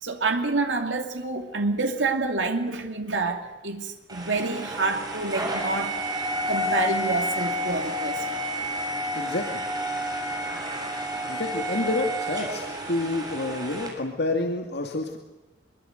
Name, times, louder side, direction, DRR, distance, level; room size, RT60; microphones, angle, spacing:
voice 1, 0.0-8.4, right 3 dB, 85° right, 4 dB, 2.6 m, -28 dB
sound 1, 4.1-13.9, equal, 20° right, 7.0 m, -30 dB
voice 2, 9.2-9.5 11.3-15.2, left 2 dB, 60° left, 3 dB, 2.4 m, -28 dB
25.5 x 23.0 x 8.0 m, 1.1 s
head